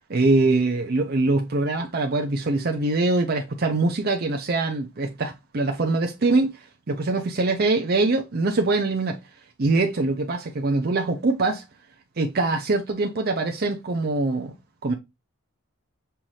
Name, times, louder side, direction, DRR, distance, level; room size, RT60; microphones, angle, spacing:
voice 1, 0.1-9.2 9.6-11.6 12.2-14.5 14.8-14.9, right 3 dB, 45° right, 0.6 m, -23 dB
5.6 x 2.6 x 3.0 m
head